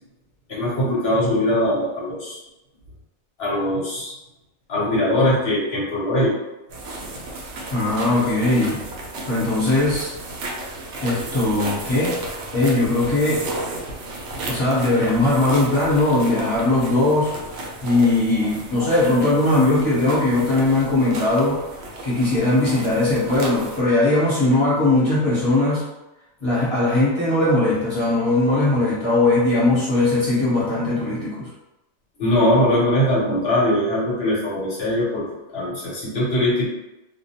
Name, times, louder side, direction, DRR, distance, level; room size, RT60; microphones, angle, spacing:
voice 1, 0.5-2.4 3.4-4.1 4.7-6.3 32.2-35.2 35.5-36.7, left 1 dB, 55° left, -6 dB, 1.0 m, -21 dB
sound 1, 6.7-23.8, right 2 dB, 65° right, 0.7 m, -34 dB
voice 2, 7.7-8.8 9.3-10.1 11.0-12.2 12.5-13.5 14.5-17.3 17.8-21.6 22.0-25.8 26.4-31.5, left 2 dB, 25° left, -10 dB, 0.9 m, -19 dB
2.3 x 2.1 x 2.8 m, 0.96 s
omnidirectional pair, 1.4 m